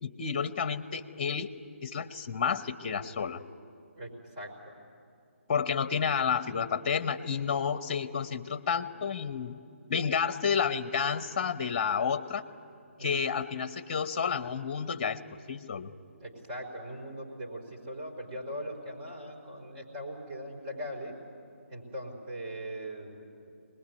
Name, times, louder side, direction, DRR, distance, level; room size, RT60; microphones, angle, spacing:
voice 1, 0.0-1.5 1.8-3.4 5.5-9.6 9.9-12.4 13.0-15.2 15.5-15.9, left 6 dB, 35° left, 12 dB, 1.0 m, -30 dB
voice 2, 4.4-4.8 13.0-13.3 16.2-21.2 21.7-23.2, equal, 35° right, -1 dB, 4.7 m, -40 dB
24.5 x 20.5 x 9.6 m, 2.4 s
figure-of-eight pair, 145°, 7 cm